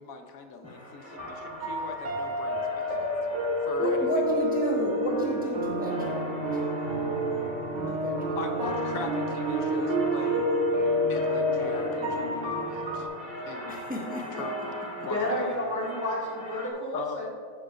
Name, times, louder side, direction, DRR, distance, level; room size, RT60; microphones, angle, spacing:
voice 1, 0.0-3.1 3.7-4.1 8.4-10.5 10.8-13.1 13.5-13.8 14.3-15.7 16.9-17.2, left 4 dB, 80° left, 5 dB, 1.2 m, -40 dB
sound 1, 0.6-16.7, right 1 dB, 35° left, 1.7 m, -42 dB
sound 2, 1.2-13.0, equal, 60° right, 2.2 m, -29 dB
voice 2, 3.8-6.6 7.7-8.4 13.7-14.7 15.0-15.3, equal, 5° right, -2 dB, 1.2 m, -33 dB
voice 3, 15.0-17.3, left 1 dB, 10° left, -5 dB, 1.9 m, -31 dB
13.5 x 9.3 x 2.5 m, 2.1 s
omnidirectional pair, 1.4 m